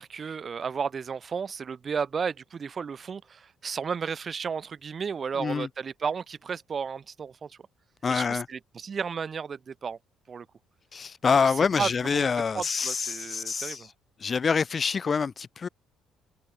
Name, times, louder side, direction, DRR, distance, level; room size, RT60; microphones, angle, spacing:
voice 1, 0.0-7.6 8.1-10.0 10.3-10.5 11.4-11.5 11.8-12.3 12.5-13.9, right 6 dB, 30° right, 2.7 m, -33 dB
voice 2, 8.0-8.5 10.9-13.9 14.2-15.7, left 5 dB, 25° left, 1.9 m, -26 dB
cardioid pair, 150°, 0 cm